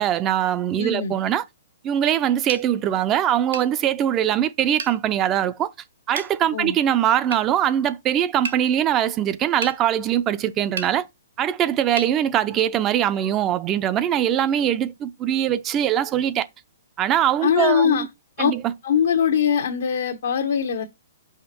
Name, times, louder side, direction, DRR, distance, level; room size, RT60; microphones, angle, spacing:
voice 1, 0.0-1.4 1.8-5.7 6.1-11.1 11.4-16.5 17.0-18.1 18.4-18.7, right 10 dB, 25° right, 0.5 m, -22 dB
voice 2, 0.8-1.1 6.5-6.8 17.4-18.0 18.4-18.5 18.8-20.8, left 7 dB, 70° left, 1.0 m, -21 dB
sound 1, 2.5-2.7 3.5-3.7 4.8-5.0 6.2-6.3 7.3-7.5 8.5-8.6 9.6-9.8 10.8-10.9 12.0-12.1, right 3 dB, 75° right, 1.0 m, -31 dB
5.8 x 5.0 x 4.3 m
hypercardioid pair, 145°, 0 cm